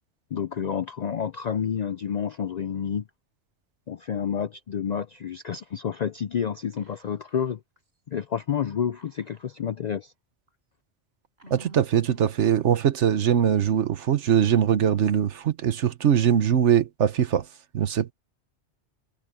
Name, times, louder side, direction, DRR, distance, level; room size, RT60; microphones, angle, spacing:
voice 1, 0.3-3.0 3.9-7.6 8.1-10.1, left 8 dB, 60° left, 0.4 m, -29 dB
Whispering, 6.8-7.5 7.8-7.9 9.0-9.9 10.5-10.6 11.4-12.6, right 1 dB, 60° right, 4.7 m, -51 dB
voice 2, 11.5-17.4 17.7-18.1, right 9 dB, 75° right, 1.2 m, -22 dB
omnidirectional pair, 1.2 m